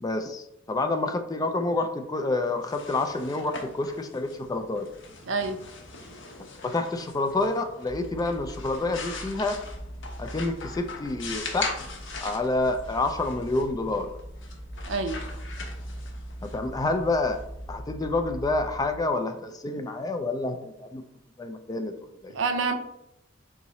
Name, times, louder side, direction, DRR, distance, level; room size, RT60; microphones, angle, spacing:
voice 1, 0.0-4.9 6.6-9.6 10.2-11.9 12.2-14.1 16.4-17.4 17.7-21.0 21.4-21.9 22.2-22.3, left 2 dB, 20° left, 6 dB, 0.3 m, -28 dB
sound 1, 2.5-18.2, left 4 dB, 70° left, 0.8 m, -41 dB
voice 2, 5.3-5.6 14.9-15.2 22.3-22.7, right 4 dB, 70° right, 8 dB, 0.5 m, -27 dB
sound 2, 7.9-19.0, equal, 20° right, 1.1 m, -41 dB
3.6 x 2.9 x 4.1 m, 0.83 s
head